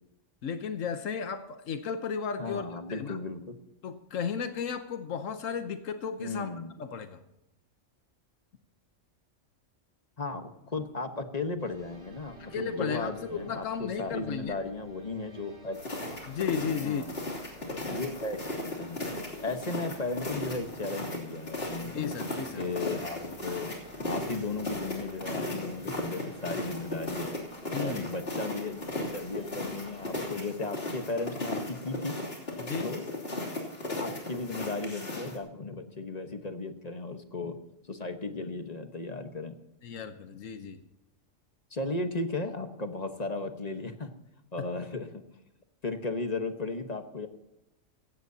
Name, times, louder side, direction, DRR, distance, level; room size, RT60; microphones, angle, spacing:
voice 1, 0.4-3.2 3.8-6.5 6.8-7.2 12.4-14.6 16.3-17.0 21.8-22.7 27.7-28.1 32.6-33.0 39.8-40.8, left 6 dB, 90° left, 8 dB, 1.3 m, -34 dB
voice 2, 2.4-3.5 6.2-6.7 10.2-15.8 16.8-17.2 17.8-19.0 19.4-22.1 22.6-23.7 24.0-27.4 27.8-28.8 29.1-32.1 32.8-33.0 33.9-37.6 37.9-39.6 41.7-44.1 44.5-45.2 45.8-47.3, left 3 dB, 35° left, 7 dB, 1.3 m, -35 dB
sound 1, 11.6-30.5, right 1 dB, 70° right, 4.7 m, -54 dB
sound 2, 15.7-35.4, left 2 dB, 50° left, 3.3 m, -36 dB
16.5 x 15.5 x 2.8 m, 0.89 s
omnidirectional pair, 1.3 m